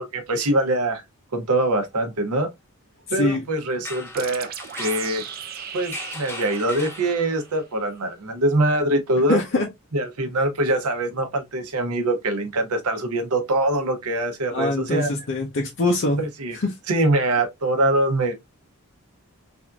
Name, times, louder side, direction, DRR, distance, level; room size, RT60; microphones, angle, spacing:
voice 1, 0.1-1.0 1.3-2.5 3.1-4.5 4.8-5.2 5.7-9.4 9.9-15.1 16.2-16.6 16.9-18.3, right 1 dB, 80° right, 0.7 m, -23 dB
sound 1, 3.7-7.6, left 2 dB, 10° left, 0.5 m, -38 dB
sound 2, 4.1-7.6, right 9 dB, 40° right, 0.4 m, -37 dB
voice 2, 9.3-9.7 14.5-16.2 16.5-16.7, left 2 dB, 55° left, 0.6 m, -23 dB
3.5 x 2.5 x 2.3 m
head